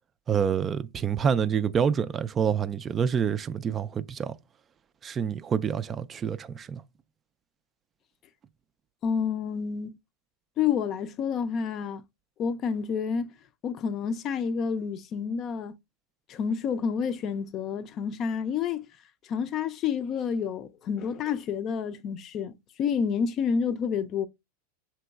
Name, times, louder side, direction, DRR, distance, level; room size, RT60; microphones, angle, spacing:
voice 1, 0.3-4.4 5.0-6.8, right 7 dB, 30° right, 0.3 m, -27 dB
voice 2, 9.0-10.0 10.6-12.0 12.4-13.3 13.6-15.7 16.3-18.8 19.3-24.3, left 6 dB, 40° left, 0.4 m, -29 dB
6.8 x 2.9 x 2.3 m
hypercardioid pair, 100°, 0 cm